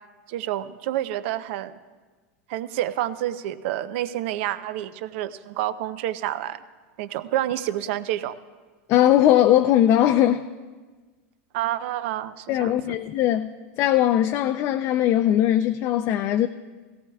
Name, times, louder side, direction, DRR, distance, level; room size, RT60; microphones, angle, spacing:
voice 1, 0.3-1.7 2.5-6.6 7.0-8.4 11.5-13.0, right 13 dB, 60° right, 13 dB, 0.6 m, -28 dB
voice 2, 8.9-10.4 12.5-13.5 13.8-16.5, left 12 dB, 40° left, 7 dB, 0.4 m, -20 dB
17.0 x 17.0 x 2.3 m, 1.3 s
supercardioid pair, 140°, 7 cm